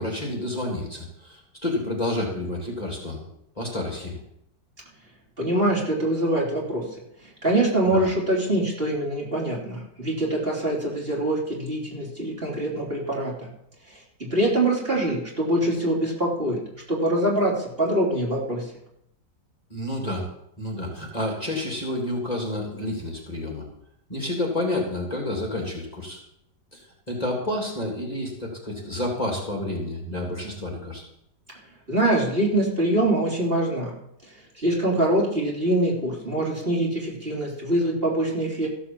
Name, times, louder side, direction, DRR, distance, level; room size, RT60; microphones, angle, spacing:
voice 1, 0.0-3.2 3.6-4.2 7.9-8.1 19.7-20.2 20.6-23.7 24.1-26.2 26.7-31.0, left 1 dB, 20° left, -1 dB, 3.0 m, -29 dB
voice 2, 5.4-6.8 7.2-13.5 13.9-14.0 14.3-16.6 16.9-18.6 31.9-33.9 34.6-38.7, right 1 dB, 30° right, -3 dB, 3.4 m, -24 dB
15.0 x 7.0 x 7.4 m, 0.76 s
omnidirectional pair, 1.9 m